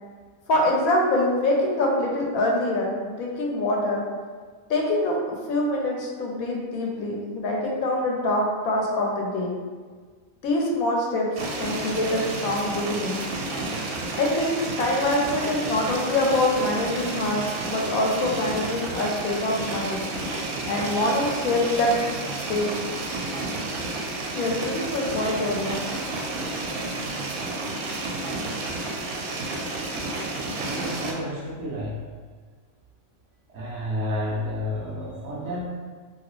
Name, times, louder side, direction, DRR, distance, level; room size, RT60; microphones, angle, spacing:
voice 1, 0.5-4.0 4.7-5.2 5.5-9.6 10.4-13.2 14.2-20.0 20.7-22.0 22.3-22.7 24.3-25.9 26.3-26.5, left 1 dB, 80° left, -1 dB, 1.1 m, -25 dB
sound 1, 11.4-31.1, right 2 dB, 85° right, 1.0 m, -31 dB
voice 2, 30.6-32.0 33.5-35.7, left 1 dB, 65° right, -3 dB, 0.7 m, -30 dB
2.9 x 2.6 x 3.0 m, 1.5 s
omnidirectional pair, 1.5 m